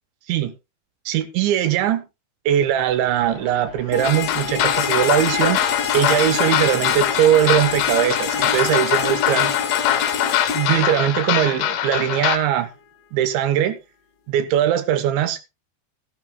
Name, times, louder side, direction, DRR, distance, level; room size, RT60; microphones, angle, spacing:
voice 1, 1.1-2.1 2.5-5.6 5.9-9.5 10.5-12.7 13.1-13.8 14.3-15.4, right 11 dB, 80° right, 3.4 m, -20 dB
sound 1, 2.6-9.4, left 3 dB, 30° left, 3.0 m, -42 dB
sound 2, 3.9-11.9, left 7 dB, 50° left, 2.1 m, -27 dB
sound 3, 4.0-12.4, left 11 dB, 70° left, 2.6 m, -23 dB
16.0 x 12.5 x 2.3 m
omnidirectional pair, 5.3 m